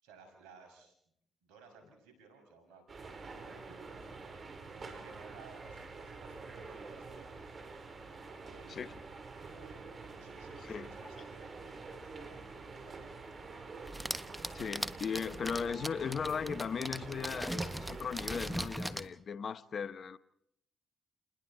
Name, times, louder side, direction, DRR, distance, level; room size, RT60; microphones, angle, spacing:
voice 1, 0.0-0.9 1.4-4.3 4.7-7.6 8.3-8.8 9.4-11.6 12.0-13.2 14.4-14.8, right 4 dB, 85° right, 6.9 m, -58 dB
sound 1, 2.9-18.6, right 4 dB, 45° right, 4.2 m, -47 dB
voice 2, 10.6-10.9 14.5-20.2, left 6 dB, 55° left, 1.0 m, -37 dB
sound 2, 13.9-19.1, right 1 dB, 5° right, 1.3 m, -40 dB
29.5 x 21.0 x 4.4 m
supercardioid pair, 50°, 0 cm